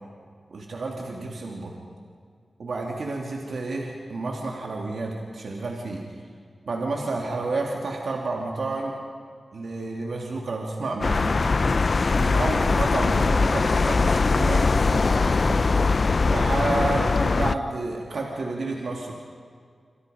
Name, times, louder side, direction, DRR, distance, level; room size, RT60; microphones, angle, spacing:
voice 1, 0.5-1.7 2.6-6.0 6.6-8.9 9.5-11.5 12.2-15.7 16.3-19.1, right 3 dB, 75° right, -1 dB, 3.1 m, -30 dB
sound 1, 11.0-17.5, left 4 dB, 50° left, 0.6 m, -21 dB
27.5 x 26.5 x 5.5 m, 2.1 s
wide cardioid pair, 80°, 0 cm